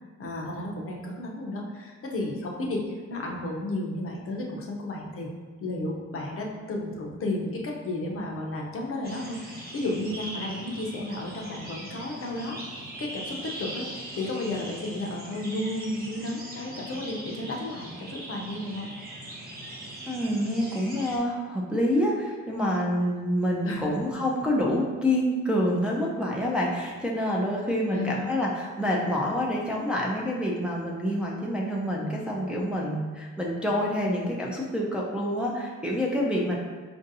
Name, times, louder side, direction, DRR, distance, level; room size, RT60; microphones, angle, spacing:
voice 1, 0.2-5.3 5.6-12.6 13.0-18.9 23.6-23.9 27.9-28.4, left 1 dB, 50° left, -1 dB, 0.7 m, -33 dB
sound 1, 9.0-21.2, right 1 dB, 30° right, 1.0 m, -41 dB
voice 2, 20.1-36.6, equal, 5° right, -3 dB, 0.5 m, -27 dB
4.4 x 2.6 x 2.7 m, 1.4 s
cardioid pair, 90°, 30 cm